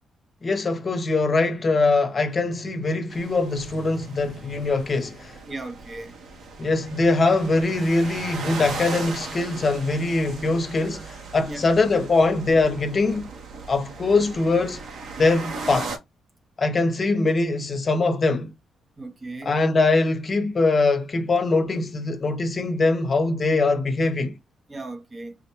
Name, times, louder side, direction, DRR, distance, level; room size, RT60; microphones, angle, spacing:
voice 1, 0.4-5.4 6.6-13.3 13.7-14.8 15.2-16.0 16.6-18.5 19.4-24.3, left 3 dB, 35° left, 0.7 m, -22 dB
sound 1, 3.1-16.0, right 3 dB, 65° right, 0.9 m, -37 dB
voice 2, 5.5-6.1 11.5-11.6 19.0-19.6 24.7-25.4, right 2 dB, 25° right, 0.6 m, -36 dB
3.6 x 2.2 x 2.9 m
cardioid pair, 90°, 0 cm